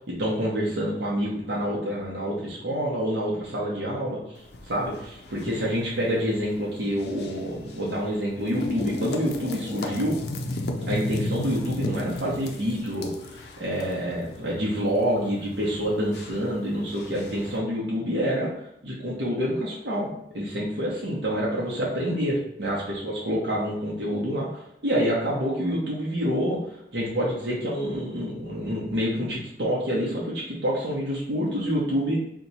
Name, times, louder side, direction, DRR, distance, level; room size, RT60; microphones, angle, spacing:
voice 1, 0.0-4.2 4.7-10.1 10.9-18.5 18.8-20.1 20.3-26.6 26.9-32.2, equal, 75° right, -5 dB, 0.7 m, -27 dB
sound 1, 4.4-17.6, left 2 dB, 70° left, 0.4 m, -36 dB
2.8 x 2.2 x 4.0 m, 0.77 s
head